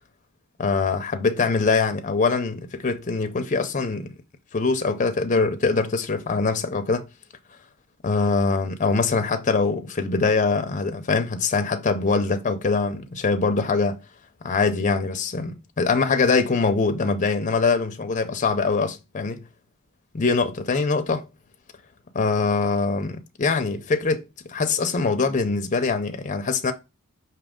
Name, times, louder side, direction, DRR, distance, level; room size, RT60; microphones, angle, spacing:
voice 1, 0.6-4.1 4.5-7.0 8.0-13.9 14.4-19.4 20.1-21.2 22.1-24.2 24.5-26.7, left 4 dB, 35° left, 0.5 m, -23 dB
5.0 x 2.8 x 3.6 m
head